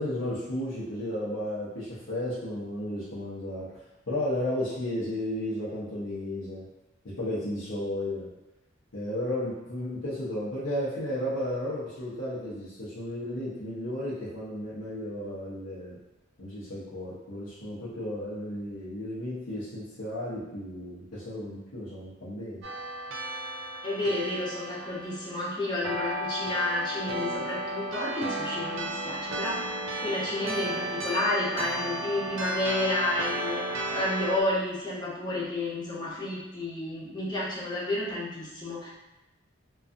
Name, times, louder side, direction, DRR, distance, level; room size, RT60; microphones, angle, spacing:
voice 1, 0.0-6.6 7.2-8.3 8.9-16.0 16.4-22.6, left 1 dB, 85° left, -10 dB, 0.7 m, -33 dB
sound 1, 22.6-34.4, right 1 dB, 65° right, 0.4 m, -34 dB
voice 2, 23.8-38.9, left 1 dB, 20° left, -7 dB, 0.7 m, -31 dB
2.5 x 2.3 x 2.5 m, 1.0 s
head